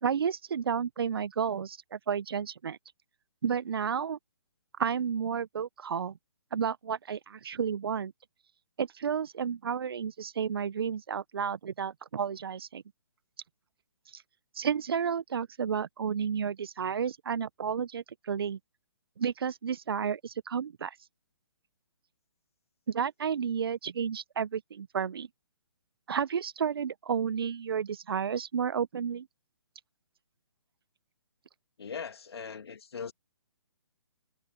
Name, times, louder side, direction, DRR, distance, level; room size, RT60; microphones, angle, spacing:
voice 1, 0.0-2.8 3.4-4.2 4.8-6.2 6.5-8.1 8.8-12.8 14.1-14.2 14.5-18.6 19.2-20.9 22.9-25.3 26.1-29.3, right 7 dB, 60° right, 1.4 m, -31 dB
voice 2, 31.8-33.1, left 6 dB, 65° left, 2.7 m, -40 dB
figure-of-eight pair, 135°, 14 cm